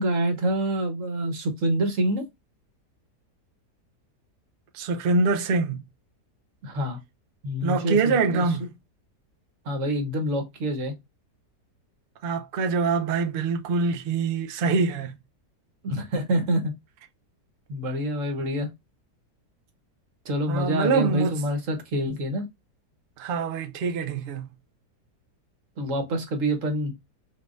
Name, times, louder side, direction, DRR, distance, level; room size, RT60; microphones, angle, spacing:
voice 1, 0.0-2.2 6.6-7.0 7.4-8.6 9.6-10.9 15.8-16.8 17.7-18.7 20.2-22.5 25.8-26.9, right 1 dB, 50° right, 1.4 m, -27 dB
voice 2, 4.7-5.8 7.6-8.7 12.2-15.1 20.5-21.3 23.2-24.4, right 4 dB, 85° right, 0.4 m, -24 dB
4.0 x 3.7 x 2.5 m
omnidirectional pair, 1.8 m